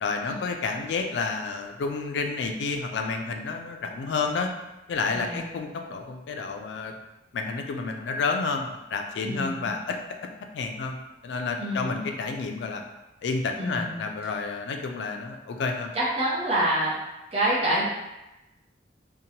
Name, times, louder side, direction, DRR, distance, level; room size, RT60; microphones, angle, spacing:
voice 1, 0.0-4.5 4.9-6.9 7.3-10.0 10.5-11.0 11.2-12.8 13.2-15.9, left 4 dB, 80° left, 4 dB, 0.3 m, -30 dB
voice 2, 5.1-5.5 9.2-9.7 11.6-11.8 13.6-14.0 15.9-16.9 17.3-17.9, right 1 dB, 35° right, -6 dB, 0.7 m, -26 dB
2.8 x 2.1 x 2.8 m, 0.99 s
head